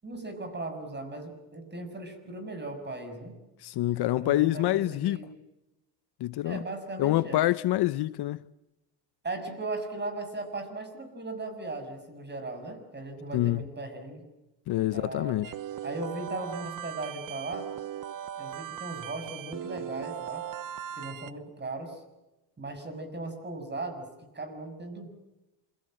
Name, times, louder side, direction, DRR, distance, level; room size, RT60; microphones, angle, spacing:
voice 1, 0.0-3.4 4.2-5.3 6.4-7.4 9.2-14.2 14.9-15.4 15.8-17.7 18.4-20.4 21.0-22.0 22.6-24.1 24.3-25.1, right 2 dB, 25° right, 6.5 m, -37 dB
voice 2, 3.6-5.3 6.2-6.6 7.0-8.4 13.3-13.6 14.7-15.5, left 15 dB, 60° left, 0.8 m, -26 dB
sound 1, 15.4-21.3, right 10 dB, 45° right, 1.0 m, -39 dB
28.0 x 23.5 x 7.7 m
cardioid pair, 115°, 45 cm